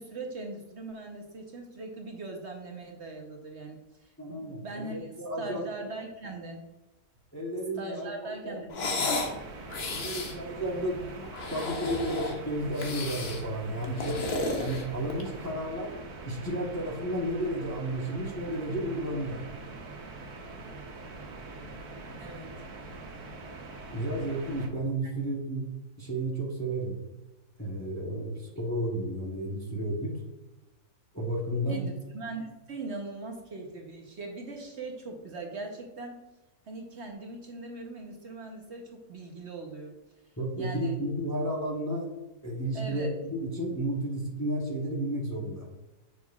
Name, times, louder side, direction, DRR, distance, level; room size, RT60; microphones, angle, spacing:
voice 1, 0.0-6.6 7.7-9.1 22.2-22.5 25.0-25.1 31.7-36.2 36.7-39.9 40.6-41.0 42.7-43.1, right 3 dB, 55° right, 2 dB, 1.0 m, -40 dB
voice 2, 4.2-5.7 7.3-8.1 8.4-8.6 9.8-14.3 14.6-16.0 16.2-19.4 23.9-25.7 26.0-27.0 27.6-30.2 31.1-31.8 40.4-42.1 42.4-45.7, right 1 dB, 15° left, -2 dB, 0.8 m, -32 dB
sound 1, 8.7-9.3 9.7-10.4 11.2-12.4 12.8-13.4 13.8-15.4, left 2 dB, 80° left, 1.6 m, -33 dB
sound 2, 9.1-24.7, right 2 dB, 80° right, 1.6 m, -43 dB
6.7 x 6.0 x 2.4 m, 1.1 s
omnidirectional pair, 1.6 m